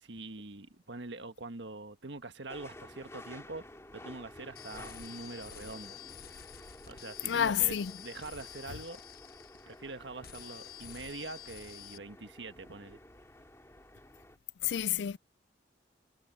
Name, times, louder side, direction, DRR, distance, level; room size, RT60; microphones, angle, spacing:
voice 1, 0.0-3.7 3.9-6.0 6.9-9.0 9.7-13.0, right 3 dB, 75° right, 1.5 m, -44 dB
sound 1, 2.5-14.4, left 1 dB, 15° left, 2.3 m, -52 dB
sound 2, 4.6-9.9 10.2-12.0, left 9 dB, 55° left, 1.0 m, -49 dB
voice 2, 7.2-7.9 14.6-15.2, left 10 dB, 75° left, 0.4 m, -29 dB
head